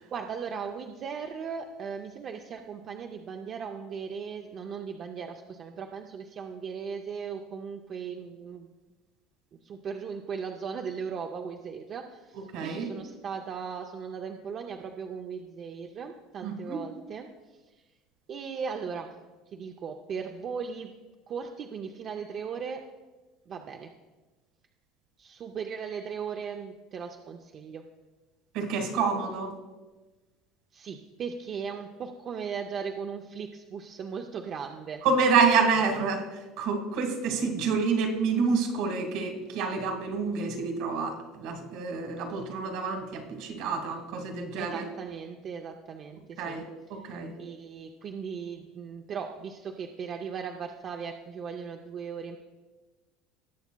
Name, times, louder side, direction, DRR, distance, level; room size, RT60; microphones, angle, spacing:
voice 1, 0.1-8.7 9.5-17.9 18.3-19.1 19.5-20.9 21.3-22.8 23.5-23.9 25.2-27.8 30.7-35.0 44.6-46.6 47.0-47.1 47.4-52.4, right 6 dB, 35° right, 4 dB, 0.5 m, -38 dB
voice 2, 12.5-12.9 16.4-16.8 28.5-29.5 35.0-36.2 36.6-44.8 46.4-46.6 47.0-47.3, right 5 dB, 65° right, 4 dB, 1.6 m, -28 dB
18.5 x 7.0 x 2.2 m, 1.2 s
cardioid pair, 155°, 0 cm